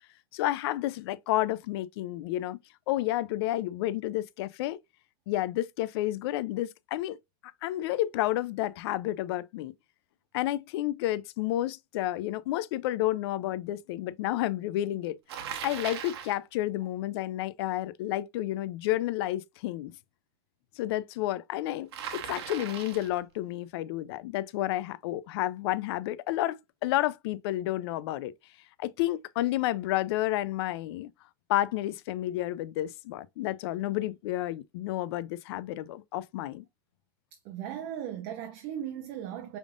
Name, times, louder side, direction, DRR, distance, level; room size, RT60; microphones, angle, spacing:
voice 1, 0.3-2.6 2.9-4.8 5.3-7.2 7.6-9.7 10.3-15.2 15.6-20.0 20.8-28.3 28.8-31.1 31.5-36.7, left 15 dB, 75° left, 0.4 m, -30 dB
Bicycle, 15.3-16.4 21.9-23.2, right 9 dB, 90° right, 1.0 m, -38 dB
voice 2, 37.4-39.6, right 10 dB, 55° right, 0.8 m, -37 dB
5.1 x 3.5 x 2.4 m
supercardioid pair, 150°, 13 cm